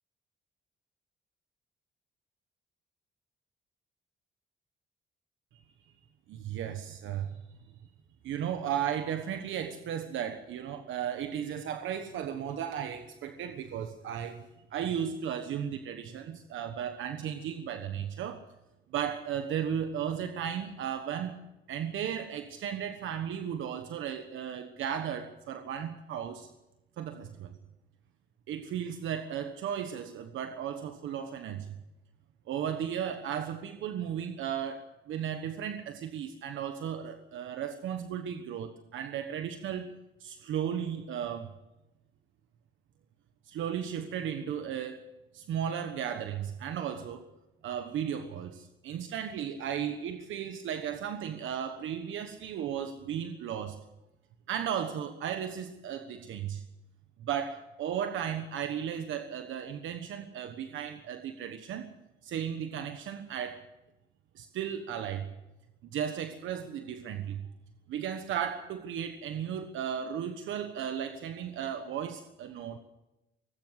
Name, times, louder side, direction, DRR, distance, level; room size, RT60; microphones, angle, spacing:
voice 1, 6.3-7.4 8.2-18.4 18.9-21.4 21.7-26.5 27.0-27.5 28.5-31.8 32.5-39.9 40.2-41.5 43.4-45.1 45.3-47.3 47.6-53.8 54.5-56.6 57.2-61.9 62.2-63.6 64.3-65.3 65.8-67.5 67.9-72.8, right 9 dB, 80° right, 8 dB, 1.3 m, -35 dB
19.0 x 17.0 x 8.0 m, 0.96 s
cardioid pair, 90°, 20 cm